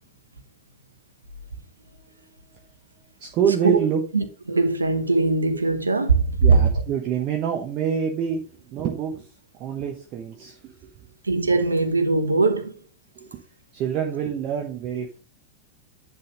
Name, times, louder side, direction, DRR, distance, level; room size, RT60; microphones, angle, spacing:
voice 1, 3.2-4.0 6.4-9.3 9.6-10.7 13.1-13.4 13.7-15.2, right 8 dB, 40° right, 1.2 m, -26 dB
voice 2, 4.1-6.6 11.2-12.8, right 3 dB, 80° right, 1.1 m, -20 dB
10.5 x 3.7 x 5.0 m
figure-of-eight pair, 90°, 0 cm